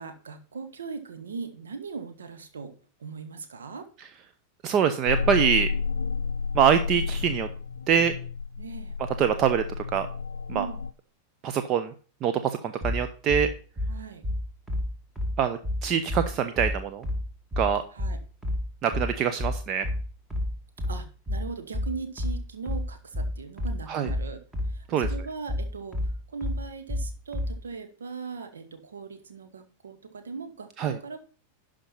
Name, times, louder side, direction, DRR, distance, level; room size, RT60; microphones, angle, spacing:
voice 1, 0.0-2.7 3.0-3.9 8.6-9.0 10.5-10.8 13.9-14.2 17.9-18.2 20.9-24.4 24.7-26.0 26.3-31.3, right 5 dB, 70° right, 8 dB, 1.5 m, -39 dB
voice 2, 4.6-5.7 6.5-7.5 7.9-8.1 9.2-9.6 9.9-10.1 10.5-10.7 11.4-11.9 12.2-13.5 15.4-17.0 17.6-17.8 18.8-19.9 23.9-24.1 24.9-25.1 30.8-31.0, right 8 dB, 35° right, 9 dB, 0.8 m, -24 dB
sound 1, 5.1-10.9, left 5 dB, 70° left, 0.5 m, -31 dB
sound 2, 12.8-27.6, left 1 dB, 10° right, 2.1 m, -30 dB
11.5 x 5.1 x 5.6 m, 0.39 s
figure-of-eight pair, 90°, 0 cm